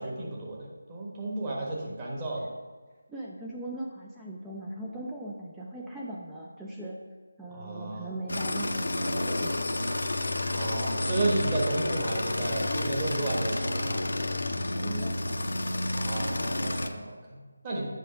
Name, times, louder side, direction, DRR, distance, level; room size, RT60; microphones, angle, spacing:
voice 1, 0.0-2.5 7.5-8.1 10.4-14.1 16.0-17.9, right 2 dB, 20° right, -3 dB, 1.3 m, -33 dB
voice 2, 3.1-7.0 7.4-9.7 14.8-15.5, right 1 dB, 5° right, -4 dB, 0.5 m, -39 dB
sound 1, 8.3-16.9, left 1 dB, 75° left, 0.7 m, -30 dB
8.2 x 4.8 x 5.1 m, 1.4 s
figure-of-eight pair, 165°, 0 cm